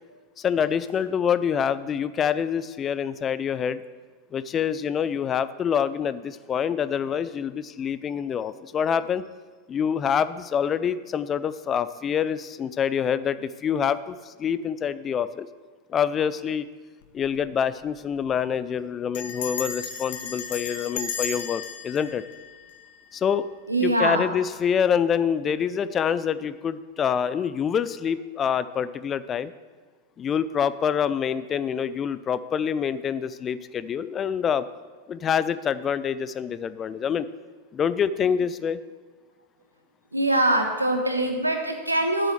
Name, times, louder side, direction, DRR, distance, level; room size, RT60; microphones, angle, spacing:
voice 1, 0.4-3.8 4.3-9.2 9.7-15.5 15.9-16.7 17.1-22.2 23.1-23.5 23.8-29.5 30.2-34.7 35.1-37.3 37.7-38.8, left 8 dB, 25° left, 15 dB, 0.4 m, -26 dB
Bell, 17.0-17.4 17.7-17.8 18.0-18.4 19.1-23.2, left 6 dB, 55° left, 1.2 m, -35 dB
voice 2, 23.7-24.3 40.1-42.3, right 1 dB, 85° right, 4 dB, 1.3 m, -23 dB
8.4 x 6.4 x 7.8 m, 1.4 s
figure-of-eight pair, 90°, 0 cm